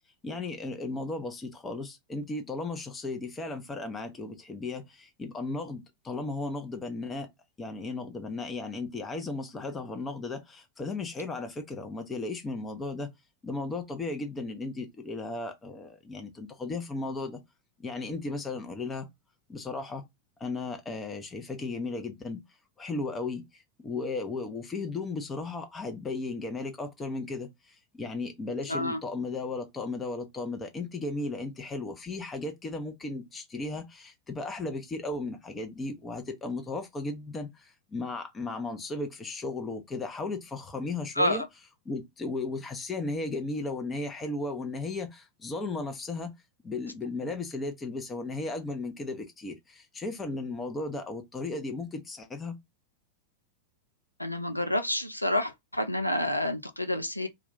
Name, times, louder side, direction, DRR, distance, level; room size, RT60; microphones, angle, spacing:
voice 1, 0.2-7.3 7.6-13.1 13.4-17.4 17.8-19.1 19.5-20.0 20.4-22.4 22.8-23.4 23.8-41.4 41.9-46.3 46.6-52.6, left 3 dB, 15° left, 0.7 m, -35 dB
voice 2, 28.7-29.0 41.2-41.5 54.2-57.3, left 1 dB, 85° left, 0.4 m, -28 dB
2.3 x 2.3 x 3.6 m
figure-of-eight pair, 90°, 0 cm